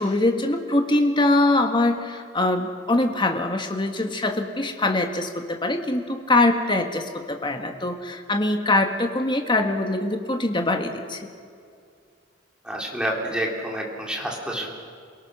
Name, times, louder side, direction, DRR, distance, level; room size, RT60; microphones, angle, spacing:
voice 1, 0.0-11.3, left 2 dB, 25° left, 4 dB, 1.7 m, -23 dB
voice 2, 12.6-14.7, right 1 dB, 5° right, -2 dB, 3.5 m, -28 dB
28.5 x 18.0 x 6.3 m, 2.3 s
head